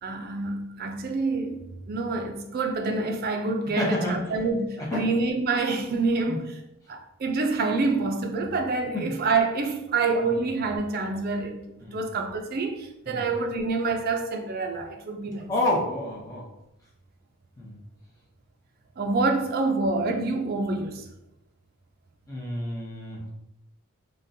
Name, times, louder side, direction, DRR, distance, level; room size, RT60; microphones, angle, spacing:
voice 1, 0.0-6.5 6.9-15.5 19.0-21.1, right 3 dB, 45° right, 0.4 m, -27 dB
voice 2, 3.8-4.2 4.8-5.1 6.3-6.4 8.9-9.1 11.8-12.0 13.1-13.2 15.5-16.4 17.6-17.8 22.3-23.3, left 1 dB, 15° left, 0.7 m, -29 dB
3.7 x 2.2 x 2.6 m
head